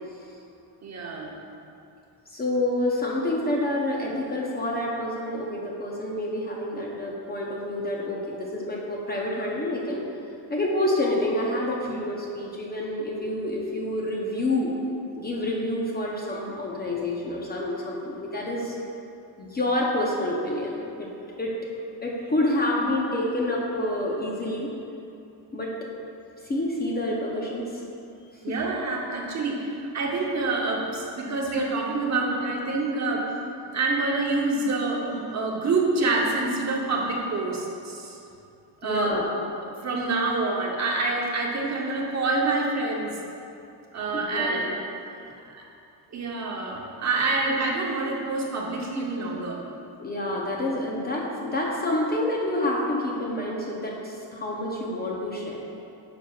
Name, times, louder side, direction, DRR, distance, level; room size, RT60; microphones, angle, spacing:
voice 1, 0.8-1.3 28.4-33.2 33.7-38.2 38.8-39.2 39.8-43.2 43.9-44.7 45.5-45.6 46.1-49.6, right 3 dB, 40° right, -1 dB, 0.8 m, -27 dB
voice 2, 2.3-10.1 10.5-14.7 15.2-18.7 19.4-21.1 21.4-21.5 22.0-24.7 25.5-25.7 26.4-27.8 28.3-28.4 38.8-39.3 44.1-44.7 45.2-45.4 50.0-55.6, left 1 dB, 20° left, -3 dB, 0.6 m, -28 dB
9.4 x 5.8 x 2.3 m, 2.7 s
cardioid pair, 150°, 44 cm